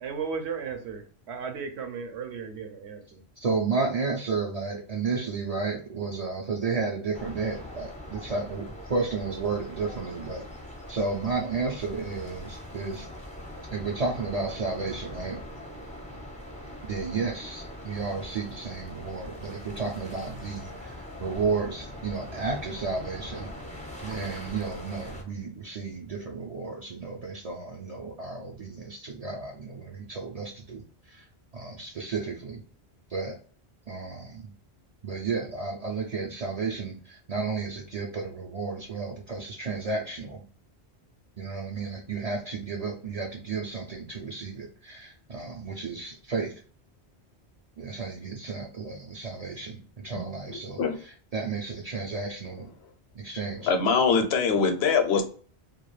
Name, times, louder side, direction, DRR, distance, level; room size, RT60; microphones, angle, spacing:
voice 1, 0.0-3.2, right 6 dB, 80° right, 5 dB, 0.9 m, -35 dB
voice 2, 3.4-10.5 10.9-13.1 13.7-15.4 16.8-23.5 24.0-31.3 31.5-32.6 33.1-33.3 33.9-34.5 35.0-40.4 41.4-46.5 47.8-52.7 53.1-53.7, right 4 dB, 55° right, -1 dB, 0.4 m, -32 dB
sound 1, 7.1-25.2, left 1 dB, 10° left, 0.3 m, -42 dB
voice 3, 50.5-51.0 53.7-55.2, left 5 dB, 75° left, 6 dB, 0.8 m, -23 dB
2.3 x 2.3 x 3.0 m, 0.43 s
omnidirectional pair, 1.1 m